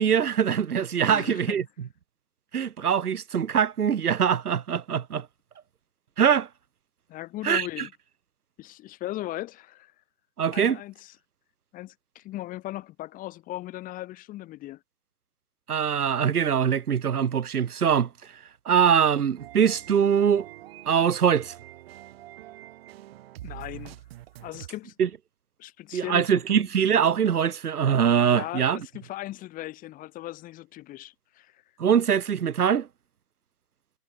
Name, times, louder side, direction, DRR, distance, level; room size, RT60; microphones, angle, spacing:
voice 1, 0.0-1.6 2.5-5.3 6.2-6.5 7.4-7.7 10.4-10.8 15.7-18.1 18.7-20.5 20.9-21.5 25.0-25.1 25.9-28.8 31.8-32.9, right 8 dB, 65° right, 2.9 m, -23 dB
voice 2, 1.1-1.6 7.1-7.9 8.6-9.9 10.5-11.1 11.7-14.8 23.4-24.0 24.4-24.9 25.6-26.6 28.2-31.6, left 16 dB, 15° left, 3.4 m, -38 dB
sound 1, 19.3-24.7, right 15 dB, 35° right, 6.2 m, -45 dB
hypercardioid pair, 150°, 49 cm